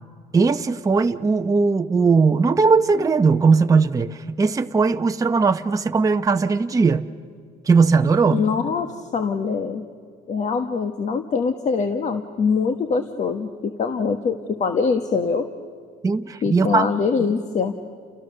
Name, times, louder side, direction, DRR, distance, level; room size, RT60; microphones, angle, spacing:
voice 1, 0.3-7.1 7.6-8.4 16.0-16.9, right 4 dB, 20° right, 6 dB, 0.8 m, -19 dB
voice 2, 8.3-9.8 10.3-15.4 16.4-17.7, left 5 dB, 45° left, 7 dB, 1.4 m, -23 dB
30.0 x 29.0 x 6.7 m, 2.1 s
cardioid pair, 110°, 17 cm